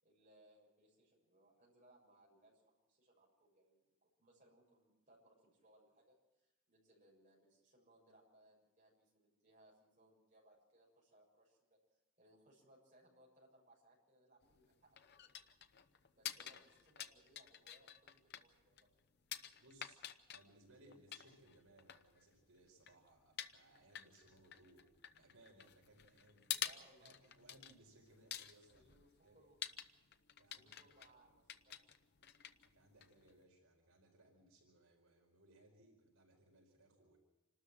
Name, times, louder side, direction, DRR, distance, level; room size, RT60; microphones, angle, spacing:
voice 1, 0.0-15.5 16.1-19.0 26.5-27.1 28.7-29.6 30.5-32.0, right 1 dB, 35° right, -3 dB, 7.0 m, -69 dB
sound 1, 14.4-33.4, left 10 dB, 50° left, 0.8 m, -50 dB
voice 2, 19.6-20.0 20.3-26.4 27.0-28.8 29.2-29.4 30.4-31.0 32.6-37.2, right 1 dB, 75° right, -1 dB, 4.9 m, -66 dB
27.5 x 13.0 x 7.7 m, 1.0 s
head